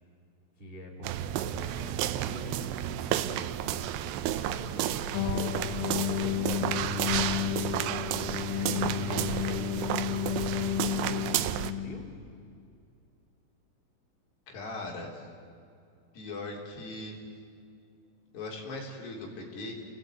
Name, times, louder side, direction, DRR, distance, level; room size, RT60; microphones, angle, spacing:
voice 1, 0.6-3.6 4.2-7.5 8.5-12.1, right 1 dB, 20° right, 1 dB, 1.5 m, -45 dB
sound 1, 1.0-11.7, right 11 dB, 85° right, 2.4 m, -32 dB
sound 2, 5.1-12.2, left 13 dB, 85° left, 3.4 m, -32 dB
voice 2, 14.5-15.3 16.1-17.2 18.3-19.7, left 2 dB, 55° left, 0 dB, 5.2 m, -39 dB
30.0 x 18.0 x 9.1 m, 2.4 s
omnidirectional pair, 5.9 m